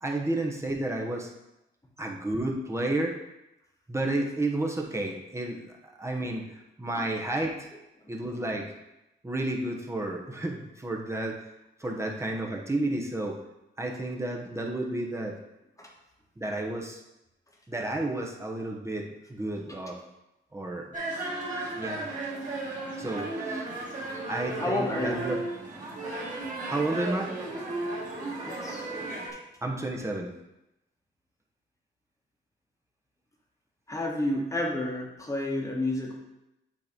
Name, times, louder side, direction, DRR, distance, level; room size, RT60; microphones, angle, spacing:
voice 1, 0.0-1.3 2.0-3.2 3.9-7.7 8.1-8.7 9.2-11.4 11.8-13.4 13.8-15.4 16.4-17.0 17.7-20.0 20.5-20.9 21.8-22.1 23.0-23.7 24.3-25.4 26.6-27.3 29.6-30.3, right 2 dB, 15° right, -1 dB, 1.0 m, -31 dB
sound 1, 20.9-29.3, right 2 dB, 40° right, 2.4 m, -35 dB
voice 2, 24.6-25.2 28.5-28.9 33.9-36.2, left 1 dB, 15° left, -1 dB, 1.3 m, -30 dB
8.5 x 3.1 x 5.2 m, 0.91 s
cardioid pair, 100°, 21 cm